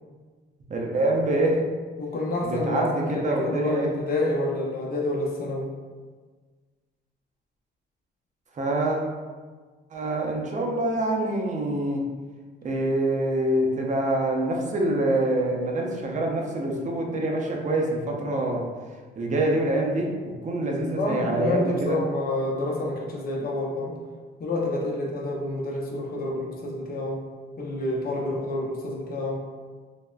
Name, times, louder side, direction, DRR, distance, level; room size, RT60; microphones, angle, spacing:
voice 1, 0.7-1.6 2.4-3.9 8.5-9.0 9.9-12.0 12.6-18.6 19.2-20.1 20.4-22.0, right 1 dB, 40° right, 0 dB, 0.5 m, -25 dB
voice 2, 2.0-5.7 21.0-23.9 24.4-27.2 27.6-29.4, left 2 dB, 50° left, -2 dB, 0.6 m, -28 dB
3.3 x 2.0 x 2.3 m, 1.5 s
cardioid pair, 90°, 20 cm